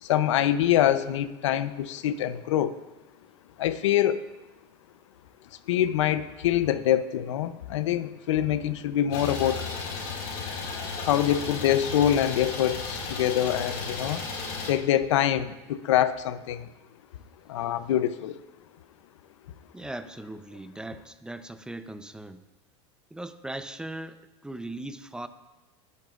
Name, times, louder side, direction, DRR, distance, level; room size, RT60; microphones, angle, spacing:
voice 1, 0.0-2.8 3.6-4.2 5.7-9.6 11.0-14.2 14.7-16.7 17.5-18.4, left 11 dB, 85° left, 13 dB, 0.7 m, -25 dB
Idling, 9.1-14.7, left 4 dB, 55° left, 4.8 m, -34 dB
voice 2, 11.0-11.3 19.7-22.4 23.1-25.3, right 1 dB, 5° right, 10 dB, 0.6 m, -39 dB
19.0 x 11.0 x 2.5 m, 1.1 s
supercardioid pair, 120°, 15 cm